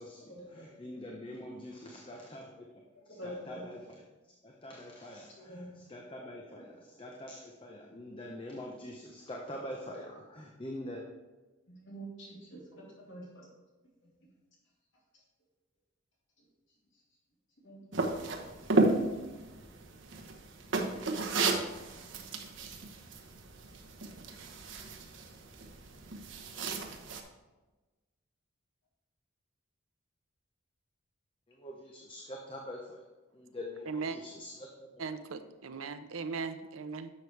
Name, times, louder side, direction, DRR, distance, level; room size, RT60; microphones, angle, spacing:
voice 1, 0.0-2.7 3.1-4.0 4.4-11.1 31.5-33.0 33.3-35.1, left 1 dB, 25° left, 0 dB, 0.8 m, -45 dB
voice 2, 3.2-3.7 5.5-5.7 6.5-6.6 11.7-13.4 14.0-14.1 17.6-17.8 18.5-18.6, right 1 dB, 60° left, -5 dB, 3.2 m, -46 dB
sound 1, 17.9-27.2, right 3 dB, 60° right, 1.0 m, -33 dB
voice 3, 33.9-34.2 35.0-37.1, right 4 dB, 80° right, 10 dB, 0.6 m, -38 dB
10.5 x 6.8 x 3.3 m, 1.2 s
head